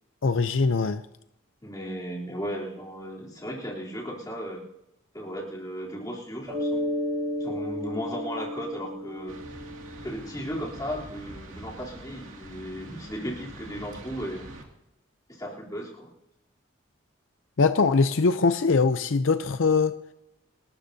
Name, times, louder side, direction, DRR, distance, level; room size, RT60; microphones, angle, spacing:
voice 1, 0.2-1.0 17.6-19.9, left 4 dB, 75° left, 10 dB, 0.6 m, -22 dB
voice 2, 1.6-4.6 5.1-6.9 7.4-9.4 10.0-14.5 15.3-16.1, equal, 20° left, -4 dB, 3.4 m, -36 dB
Mallet percussion, 6.5-10.9, equal, 25° right, 1.7 m, -33 dB
sound 1, 9.3-14.6, right 1 dB, 90° right, 2.4 m, -44 dB
28.0 x 13.0 x 2.8 m, 0.85 s
head